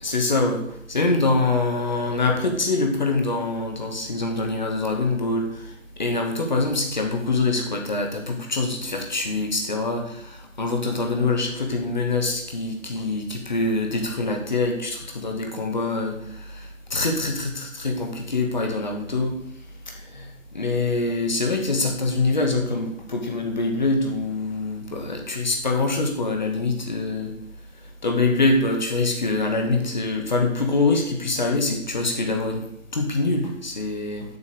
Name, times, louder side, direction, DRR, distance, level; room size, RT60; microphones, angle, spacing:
voice 1, 0.0-5.5 6.0-10.3 10.6-16.2 16.6-16.7 16.9-19.4 19.9-20.3 20.5-27.3 28.0-32.6 32.9-34.3, left 3 dB, 35° left, 3 dB, 1.9 m, -24 dB
8.5 x 8.4 x 6.8 m, 0.74 s
figure-of-eight pair, 165°, 41 cm